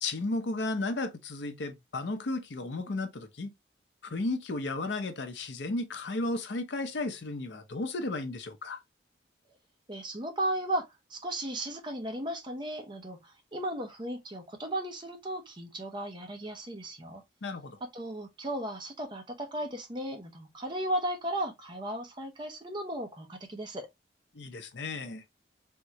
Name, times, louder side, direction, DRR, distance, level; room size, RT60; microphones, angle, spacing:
voice 1, 0.0-3.5 4.0-8.8 17.4-17.8 24.3-25.2, left 2 dB, 80° left, 0.6 m, -34 dB
voice 2, 9.9-17.2 17.9-23.9, right 1 dB, 25° right, 0.7 m, -35 dB
3.6 x 2.1 x 2.7 m
head